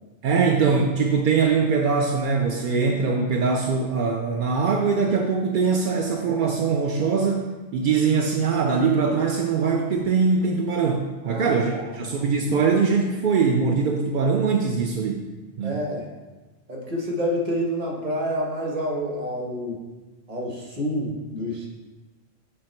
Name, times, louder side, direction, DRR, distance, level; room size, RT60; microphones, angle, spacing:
voice 1, 0.2-15.3 15.6-15.9, right 5 dB, 60° right, 1 dB, 0.5 m, -22 dB
voice 2, 11.2-11.9 15.6-16.1 16.7-19.8 20.3-21.7, equal, 30° right, -2 dB, 1.2 m, -28 dB
8.6 x 2.9 x 4.4 m, 1.2 s
omnidirectional pair, 1.3 m